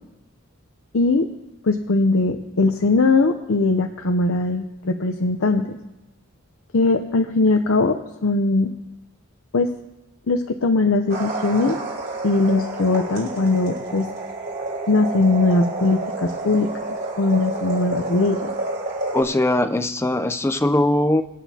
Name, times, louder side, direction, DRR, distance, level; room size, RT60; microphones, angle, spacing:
voice 1, 0.9-1.3 1.6-5.8 6.7-8.0 8.2-8.7 9.5-9.7 10.3-11.8 12.2-14.1 14.9-16.7 17.2-18.4, left 3 dB, 65° left, 4 dB, 0.6 m, -20 dB
sound 1, 11.1-19.2, right 2 dB, 50° right, 3.9 m, -29 dB
voice 2, 19.1-21.2, left 1 dB, 10° left, 9 dB, 0.4 m, -20 dB
25.5 x 9.1 x 2.8 m, 1.0 s
head